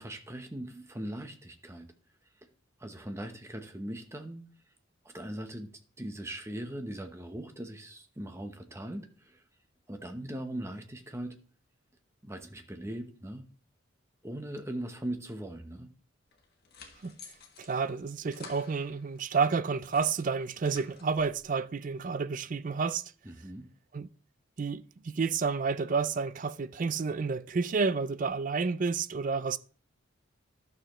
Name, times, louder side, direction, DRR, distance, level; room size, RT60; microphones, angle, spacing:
voice 1, 0.0-1.9 2.4-2.5 2.8-4.4 5.0-5.7 6.0-9.4 9.9-11.4 12.2-13.5 14.2-15.9 23.2-23.7, right 1 dB, 15° right, 0.9 m, -40 dB
sound 1, 16.3-19.3 19.7-21.5, left 5 dB, 50° left, 1.4 m, -53 dB
voice 2, 17.6-23.0 23.9-24.1 24.6-29.6, right 5 dB, 40° right, 0.4 m, -30 dB
12.5 x 6.7 x 3.0 m
head